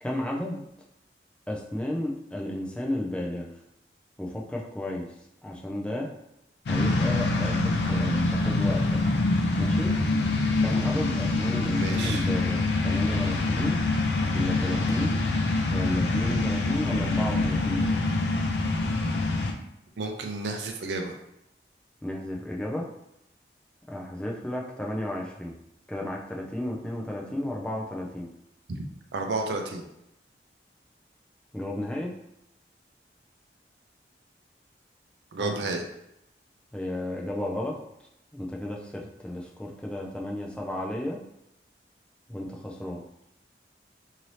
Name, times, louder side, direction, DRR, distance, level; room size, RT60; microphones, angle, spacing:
voice 1, 0.0-0.6 1.5-3.5 4.2-5.1 5.4-6.1 6.7-9.0 9.6-10.0 10.6-13.8 14.3-15.2 15.7-17.9 22.0-22.9 23.9-25.5 25.9-28.3 31.5-32.1 35.4-35.5 36.7-37.8 38.3-41.2 42.3-43.0, left 1 dB, 5° left, -1 dB, 0.3 m, -33 dB
sound 1, 6.7-19.5, left 2 dB, 80° left, 0.4 m, -25 dB
voice 2, 11.8-12.3 20.0-21.1 29.1-29.8 35.3-35.8, right 3 dB, 80° right, 3 dB, 0.4 m, -31 dB
2.7 x 2.7 x 3.1 m, 0.83 s
head